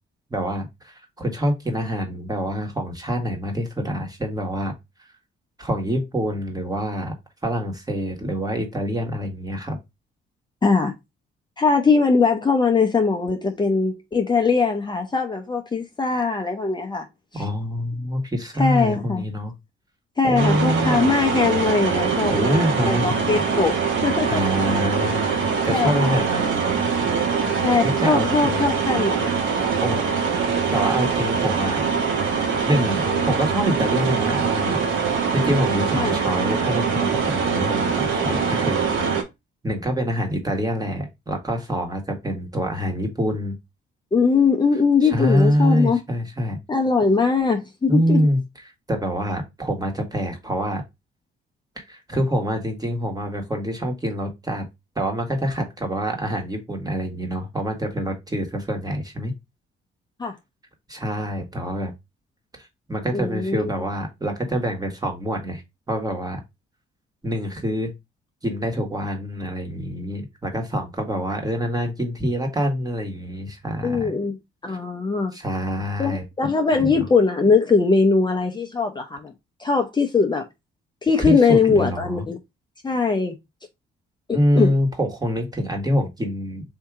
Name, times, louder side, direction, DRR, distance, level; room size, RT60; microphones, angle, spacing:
voice 1, 0.3-4.7 5.6-7.1 7.4-9.8 17.3-19.5 20.2-21.1 22.3-23.4 24.3-26.9 27.8-28.7 29.8-30.1 30.7-31.8 32.6-34.8 35.1-38.8 39.6-43.6 45.0-46.6 47.9-48.4 48.9-50.8 51.8-54.7 54.9-59.3 60.9-61.9 62.5-65.6 65.9-66.4 67.2-67.9 68.4-74.2 74.7-74.8 75.3-76.2 76.8-76.9 81.2-82.2 84.3-86.6, equal, 20° right, 1.5 m, -25 dB
voice 2, 10.6-10.9 11.6-17.1 17.3-17.5 18.6-19.2 20.2-23.7 24.0-24.4 25.7-26.2 27.6-29.4 36.0-36.2 44.1-46.0 46.7-48.2 60.2-60.3 63.1-63.7 73.8-74.4 74.6-75.3 76.0-79.3 79.6-80.5 81.0-82.4 82.8-83.4 84.6-84.7, left 4 dB, 20° left, 0.6 m, -21 dB
sound 1, 20.4-39.2, right 5 dB, 75° right, 1.2 m, -23 dB
3.6 x 2.7 x 4.6 m
cardioid pair, 90°, 20 cm